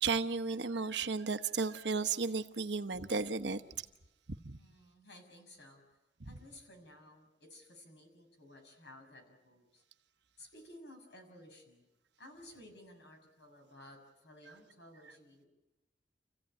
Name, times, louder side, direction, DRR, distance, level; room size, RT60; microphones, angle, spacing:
voice 1, 0.0-3.6 4.4-4.6 6.2-6.3, right 4 dB, 70° right, 1.0 m, -34 dB
voice 2, 4.5-6.0 6.2-9.8 10.4-11.8 12.2-15.5, left 1 dB, 70° left, 6.4 m, -56 dB
28.5 x 16.0 x 8.8 m
head